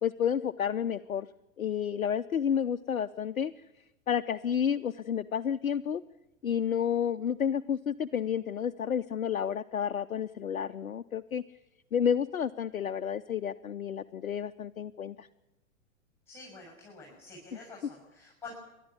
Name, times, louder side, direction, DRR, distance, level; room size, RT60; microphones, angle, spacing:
voice 1, 0.0-1.3 1.6-3.5 4.1-6.0 6.4-11.4 11.9-15.3, left 8 dB, 80° left, 7 dB, 0.7 m, -30 dB
voice 2, 16.3-18.5, left 3 dB, 5° left, -1 dB, 7.0 m, -48 dB
29.5 x 12.0 x 8.4 m, 0.97 s
figure-of-eight pair, 105°, 41 cm